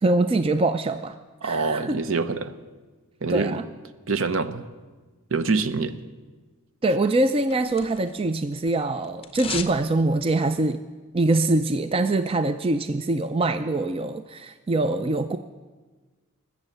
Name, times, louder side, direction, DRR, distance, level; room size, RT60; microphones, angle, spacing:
voice 1, 0.0-1.1 1.4-2.0 3.3-3.6 6.8-10.8 11.1-15.4, right 2 dB, 25° right, 10 dB, 0.4 m, -23 dB
voice 2, 1.4-2.5 3.2-3.6 4.1-4.7 5.3-6.0, right 4 dB, 60° right, 12 dB, 0.8 m, -25 dB
sound 1, 7.0-8.3 8.5-9.8 10.1-10.2, left 6 dB, 25° left, 0.7 m, -36 dB
20.5 x 7.2 x 7.9 m, 1.3 s
head